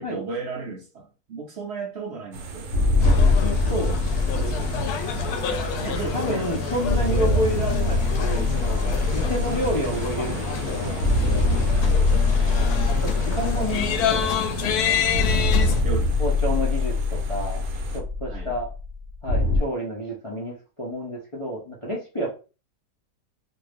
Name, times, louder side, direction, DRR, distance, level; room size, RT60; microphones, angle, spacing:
voice 1, 0.0-2.7 3.6-4.6 5.6-6.9 7.5-7.7 9.2-9.4 11.7-12.1 15.8-16.1 18.3-18.6, right 4 dB, 55° right, 0.8 m, -36 dB
sound 1, 2.3-18.0, right 4 dB, 75° right, 1.1 m, -37 dB
sound 2, 2.7-6.3 6.9-10.7 11.0-14.6 15.1-19.6, left 3 dB, 60° left, 1.1 m, -23 dB
sound 3, 3.0-15.8, left 5 dB, 85° left, 1.1 m, -28 dB
voice 2, 3.4-3.9 5.8-11.0 12.4-12.8 13.0-14.9 15.6-15.8 16.2-17.6 17.9-18.7 19.2-22.3, equal, 30° left, 0.6 m, -30 dB
2.6 x 2.6 x 3.3 m
omnidirectional pair, 1.6 m